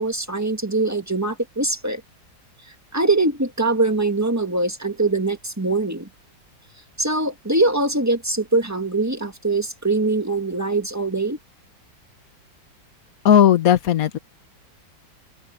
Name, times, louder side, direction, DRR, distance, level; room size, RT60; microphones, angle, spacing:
voice 1, 0.0-2.0 2.9-6.1 7.0-11.4, right 2 dB, 10° right, 1.6 m, -22 dB
voice 2, 13.2-14.2, left 9 dB, 50° left, 1.4 m, -15 dB
open air
omnidirectional pair, 2.1 m